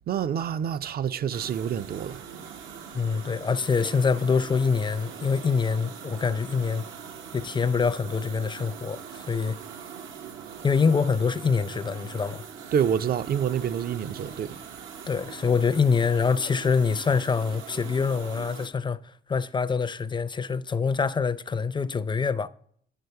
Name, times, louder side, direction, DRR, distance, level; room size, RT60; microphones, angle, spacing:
voice 1, 0.1-2.2 12.7-14.6, right 8 dB, 50° right, 0.5 m, -27 dB
sound 1, 1.3-18.7, right 7 dB, 80° right, 0.9 m, -42 dB
voice 2, 2.9-6.8 7.3-9.6 10.6-12.4 15.1-19.0 19.3-22.5, left 5 dB, 25° left, 0.4 m, -25 dB
9.5 x 6.7 x 4.6 m
cardioid pair, 90°, 20 cm